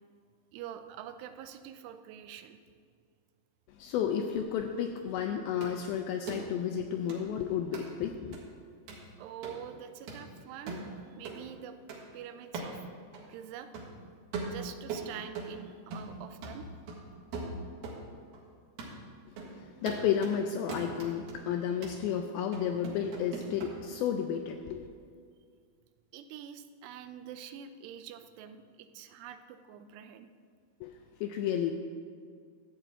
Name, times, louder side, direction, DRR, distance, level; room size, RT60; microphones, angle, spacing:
voice 1, 0.5-2.6 9.2-11.8 12.1-12.9 13.3-13.7 14.4-16.7 26.1-30.3, right 9 dB, 90° right, 9 dB, 2.8 m, -45 dB
voice 2, 3.8-8.4 19.3-24.9 30.8-30.9 31.2-31.7, left 8 dB, 85° left, 5 dB, 2.1 m, -32 dB
sound 1, 5.6-5.7 6.3-6.4 7.1-7.2 7.7-7.9 8.3-8.4 8.9-9.1 9.4-9.6 10.1-10.2 10.7-10.9 11.3-11.4 11.9-12.0 12.5-12.8 13.1-13.2 13.7-13.9 14.3-15.6 15.9-16.2 16.4-18.0 18.3-18.4 18.8-19.0 19.4-19.5 19.9-20.4 20.7-21.4 21.8-22.0 22.5-23.7, right 3 dB, 65° right, 3.3 m, -40 dB
14.0 x 8.4 x 3.6 m, 2.1 s
omnidirectional pair, 4.7 m